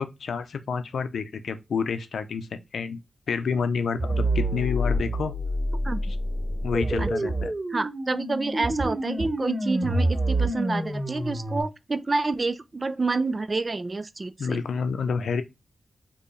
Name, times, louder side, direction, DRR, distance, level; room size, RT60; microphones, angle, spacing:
voice 1, 0.0-3.0 3.3-5.3 6.6-7.5 14.4-15.4, left 5 dB, 90° left, 0.5 m, -29 dB
sound 1, 4.0-11.6, right 1 dB, 20° right, 2.3 m, -27 dB
voice 2, 7.7-14.6, right 3 dB, 40° right, 0.4 m, -28 dB
4.4 x 3.0 x 3.1 m
cardioid pair, 70°, 0 cm